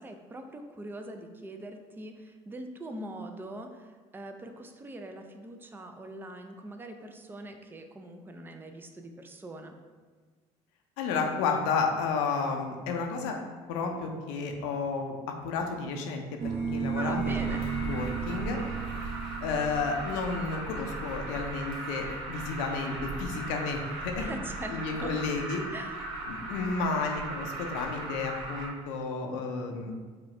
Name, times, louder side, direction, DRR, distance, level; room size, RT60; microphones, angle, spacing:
voice 1, 0.0-9.8 16.9-17.6 24.2-25.2 25.7-26.0, right 1 dB, 15° right, 5 dB, 0.5 m, -42 dB
voice 2, 11.0-13.4 13.7-17.6 17.8-18.6 19.4-24.3 24.7-25.7 26.3-29.9, left 4 dB, 80° left, 2 dB, 0.6 m, -32 dB
sound 1, 16.4-20.4, right 6 dB, 40° right, 1.0 m, -34 dB
Alarm, 17.1-28.7, right 2 dB, 65° right, 1.2 m, -38 dB
4.9 x 2.4 x 4.2 m, 1.5 s
hypercardioid pair, 75°, 15 cm